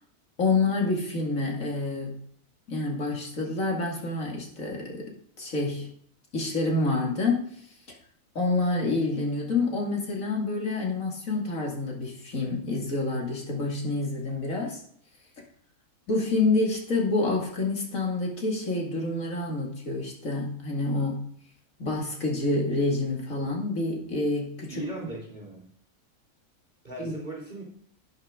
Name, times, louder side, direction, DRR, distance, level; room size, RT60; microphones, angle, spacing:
voice 1, 0.4-2.2 2.7-5.9 6.3-7.5 8.3-14.8 16.1-21.2 21.8-24.8 27.0-27.1, left 3 dB, 60° left, -1 dB, 2.6 m, -28 dB
voice 2, 24.7-25.6 26.8-27.8, right 2 dB, 30° right, -3 dB, 3.2 m, -38 dB
12.0 x 8.9 x 3.6 m, 0.62 s
omnidirectional pair, 1.6 m